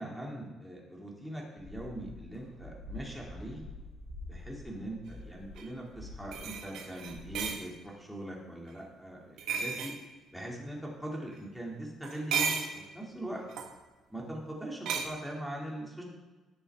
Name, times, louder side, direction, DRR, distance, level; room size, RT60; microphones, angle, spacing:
voice 1, 0.0-3.6 4.2-9.9 10.3-13.5 14.1-16.0, right 1 dB, ahead, -3 dB, 2.5 m, -41 dB
sound 1, 1.6-6.7 7.0-7.4, left 2 dB, 40° right, 3.3 m, -47 dB
sound 2, 5.6-5.7 6.3-7.6 9.4-10.0 12.0-12.8 13.5-13.7 14.8-15.0, right 6 dB, 80° right, 1.5 m, -33 dB
16.5 x 6.8 x 3.6 m, 1.2 s
cardioid pair, 145°, 0 cm